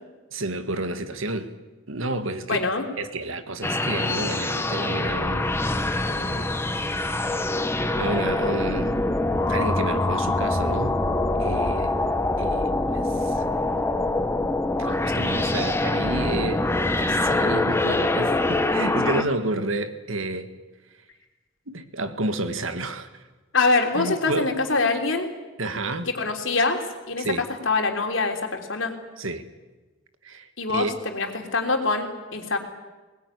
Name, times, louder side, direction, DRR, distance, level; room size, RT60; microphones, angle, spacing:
voice 1, 0.3-1.5 1.9-2.7 3.0-5.6 6.1-6.5 8.0-9.0 9.5-11.0 11.4-12.0 12.4-13.5 14.8-20.5 21.7-23.1 23.9-24.6 25.6-26.1 27.2-27.5 29.2-29.4 30.2-30.9, right 2 dB, 75° right, 9 dB, 1.9 m, -30 dB
voice 2, 2.5-2.9 23.5-25.3 26.1-26.8 27.1-28.9 30.6-32.6, left 3 dB, 70° left, 3 dB, 3.5 m, -24 dB
sound 1, 3.6-19.2, left 2 dB, 10° left, 1.2 m, -24 dB
23.0 x 20.0 x 9.8 m, 1.2 s
head